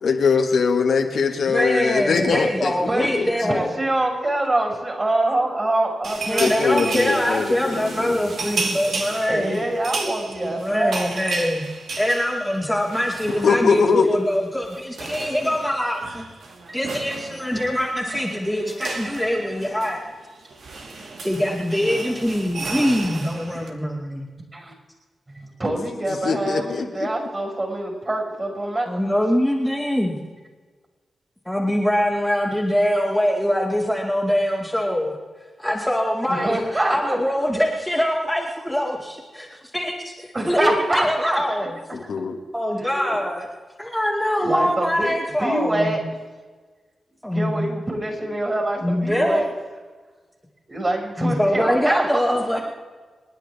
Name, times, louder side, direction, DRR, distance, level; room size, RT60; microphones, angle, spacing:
voice 1, 0.0-3.3 6.4-8.2 13.4-14.2 26.1-26.9 41.9-42.4, left 5 dB, 80° left, 2 dB, 1.7 m, -22 dB
voice 2, 1.5-3.7 6.3-9.6 10.4-11.6 12.0-16.2 16.7-20.0 21.2-24.3 28.9-30.2 31.5-35.2 35.6-41.7 42.5-43.5 43.8-46.0 47.2-47.7 48.8-49.5 51.2-52.6, equal, ahead, -3 dB, 2.3 m, -23 dB
voice 3, 3.4-7.2 9.3-11.2 24.5-24.7 25.3-29.2 36.3-37.2 40.3-41.4 42.8-43.2 43.8-43.9 44.4-46.0 47.3-49.5 50.7-52.2, right 1 dB, 30° right, 0 dB, 6.0 m, -25 dB
sound 1, 6.0-13.9 14.2-14.4 14.6-23.7, right 3 dB, 75° right, 2.1 m, -33 dB
28.5 x 10.0 x 3.5 m, 1.4 s
cardioid pair, 75°, 0 cm